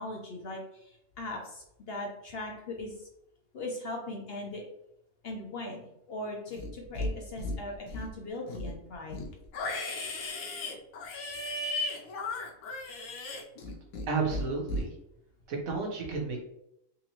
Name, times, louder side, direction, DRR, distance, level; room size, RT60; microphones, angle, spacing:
voice 1, 0.0-3.1 3.5-4.6 5.2-9.2, left 1 dB, 60° left, 0 dB, 0.7 m, -39 dB
Livestock farm animals working animals, 6.5-7.1 7.4-8.1 8.5-14.1 14.3-14.8, left 2 dB, 85° left, 1.1 m, -35 dB
voice 2, 14.1-14.9 15.5-16.4, right 4 dB, 80° right, 0 dB, 1.3 m, -32 dB
3.7 x 2.9 x 2.9 m, 0.80 s
omnidirectional pair, 1.4 m